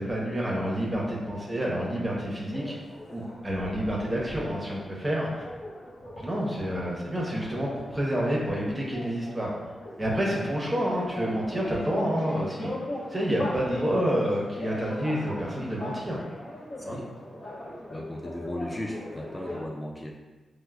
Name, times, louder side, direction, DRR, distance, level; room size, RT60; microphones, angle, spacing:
voice 1, 0.0-2.7 3.1-5.4 6.2-9.5 10.0-12.7 13.1-16.2 16.8-17.0, equal, 20° right, -4 dB, 0.7 m, -28 dB
sound 1, 2.5-19.6, left 1 dB, 60° left, 0.8 m, -39 dB
voice 2, 17.9-20.2, left 1 dB, 20° left, -1 dB, 0.4 m, -36 dB
4.4 x 2.0 x 2.3 m, 1.2 s
cardioid pair, 55°, 0 cm